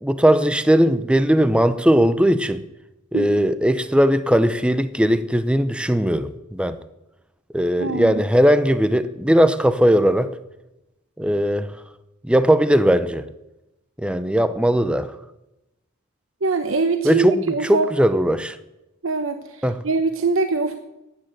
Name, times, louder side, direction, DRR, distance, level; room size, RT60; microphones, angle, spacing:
voice 1, 0.0-2.6 3.1-6.8 7.5-10.3 11.2-11.8 12.2-13.3 14.0-15.1 17.0-18.6 19.6-19.8, equal, 5° right, 12 dB, 0.6 m, -18 dB
voice 2, 3.1-3.5 7.8-8.2 16.4-17.9 19.0-20.8, right 4 dB, 70° right, 8 dB, 1.0 m, -23 dB
15.0 x 10.0 x 7.7 m, 0.95 s
head